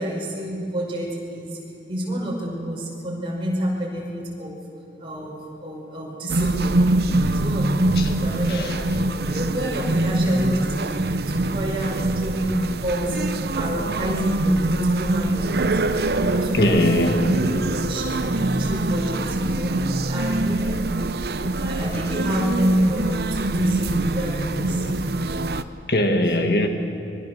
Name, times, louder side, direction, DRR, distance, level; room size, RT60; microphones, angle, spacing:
voice 1, 0.0-1.6 1.9-4.6 5.0-6.8 7.3-9.0 9.2-15.7 16.1-17.1 17.4-17.5 17.8-18.2 18.6-19.8 20.1-20.9 21.4-24.8, equal, 30° right, -3 dB, 5.4 m, -28 dB
sound 1, 6.3-25.6, right 2 dB, 60° right, 0.8 m, -24 dB
voice 2, 16.5-17.4 25.9-26.7, left 1 dB, 60° left, 4 dB, 1.7 m, -20 dB
24.5 x 23.0 x 6.7 m, 2.8 s
head